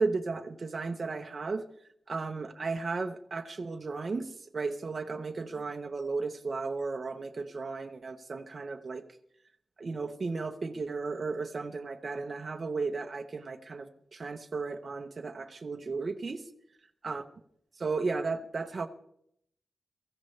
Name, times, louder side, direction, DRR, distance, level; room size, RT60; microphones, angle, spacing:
voice 1, 0.0-1.6 2.1-9.1 9.8-16.4 17.0-17.2 17.7-18.9, right 4 dB, 40° right, 4 dB, 0.9 m, -34 dB
23.5 x 15.0 x 3.3 m, 0.72 s
wide cardioid pair, 145°, 0 cm